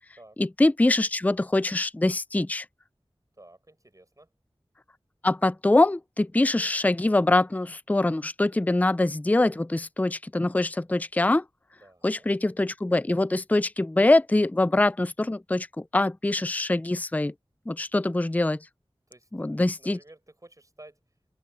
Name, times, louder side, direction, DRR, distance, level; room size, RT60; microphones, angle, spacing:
voice 1, 0.4-2.7 5.2-11.4 12.0-17.3 17.7-18.6 19.3-20.0, left 2 dB, 15° left, 0.4 m, -24 dB
voice 2, 3.3-4.3 11.8-12.3 19.1-21.3, right 1 dB, 35° right, 7.0 m, -53 dB
open air
wide cardioid pair, 55°, 10 cm